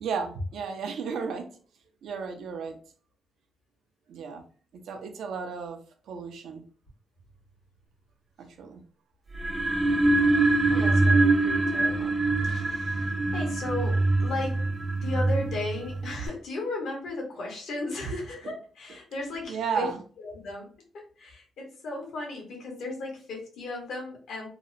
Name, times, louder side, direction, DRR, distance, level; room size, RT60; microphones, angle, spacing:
voice 1, 0.0-1.5 2.0-2.8 4.1-4.4 4.9-5.8 6.1-6.6 8.4-8.8 19.5-20.0, right 5 dB, 85° right, 5 dB, 0.5 m, -33 dB
sound 1, 9.3-16.3, right 2 dB, 30° right, 0.5 m, -24 dB
voice 2, 10.7-12.2 12.4-14.7 15.0-19.9 20.2-24.5, left 2 dB, 85° left, 0 dB, 1.0 m, -36 dB
2.8 x 2.1 x 2.4 m, 0.40 s
cardioid pair, 80°, 0 cm